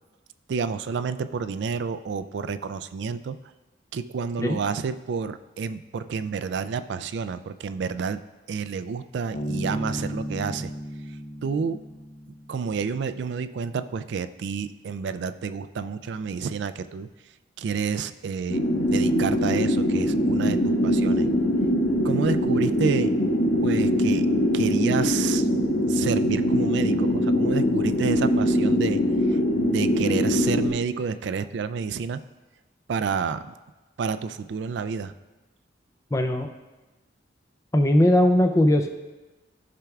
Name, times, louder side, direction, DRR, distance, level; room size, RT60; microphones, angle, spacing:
voice 1, 0.5-3.4 3.9-8.2 8.5-10.7 11.4-11.8 12.5-17.1 17.6-18.6 18.9-21.3 22.0-23.1 23.6-24.3 24.5-25.5 25.9-29.0 29.6-32.2 32.9-33.4 34.0-35.1, right 5 dB, 65° right, 11 dB, 0.3 m, -29 dB
Bass guitar, 9.3-12.8, equal, 55° left, 0.8 m, -34 dB
sound 1, 18.5-30.7, equal, 85° left, 1.2 m, -22 dB
voice 2, 36.1-36.5 37.7-38.9, left 1 dB, 15° left, 5 dB, 0.4 m, -19 dB
13.5 x 5.8 x 2.4 m, 1.2 s
head